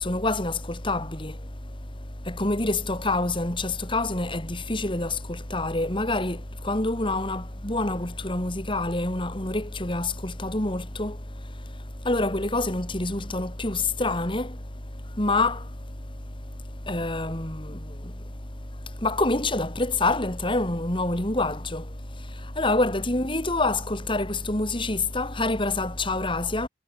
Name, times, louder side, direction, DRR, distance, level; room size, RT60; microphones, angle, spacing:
voice 1, 0.0-0.5 0.8-1.3 2.3-5.1 5.5-6.4 6.6-11.1 12.0-14.5 15.2-15.6 16.9-17.7 19.0-21.8 22.6-26.7, left 2 dB, 25° left, 3.3 m, -26 dB
head